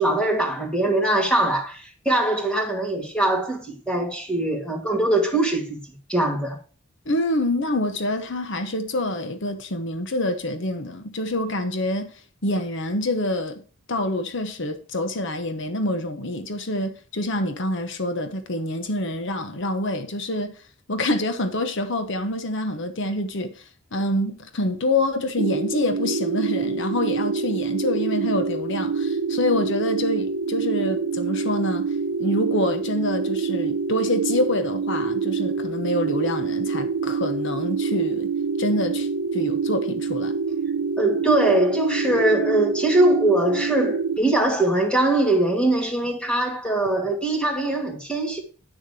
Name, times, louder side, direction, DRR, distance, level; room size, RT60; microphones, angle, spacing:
voice 1, 0.0-5.8 6.1-6.6 41.0-48.4, right 1 dB, 5° left, 2.3 m, -22 dB
voice 2, 7.1-12.1 12.4-13.6 13.9-20.5 20.9-23.6 23.9-31.8 32.2-38.3 38.6-40.3, left 1 dB, 60° left, 1.1 m, -26 dB
sound 1, 25.4-44.2, right 5 dB, 80° right, 0.7 m, -26 dB
9.6 x 6.8 x 4.8 m
head